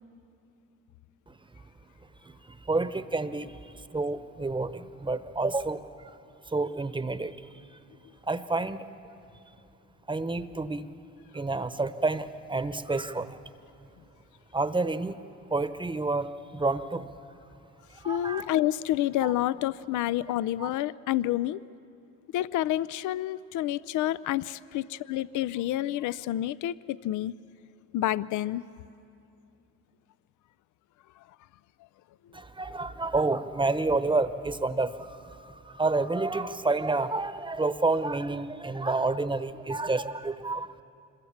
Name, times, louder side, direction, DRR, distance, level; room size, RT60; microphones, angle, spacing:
voice 1, 2.2-6.1 6.5-7.4 8.2-8.8 10.1-10.9 11.3-13.4 14.5-15.2 15.5-17.1 17.9-18.5 19.2-19.3 20.6-20.7 32.3-40.8, right 3 dB, 15° right, 12 dB, 0.9 m, -29 dB
voice 2, 18.0-21.6 22.3-27.3 27.9-28.6, left 13 dB, 80° left, 18 dB, 0.5 m, -29 dB
26.5 x 22.0 x 7.2 m, 2.6 s
cardioid pair, 90°, 30 cm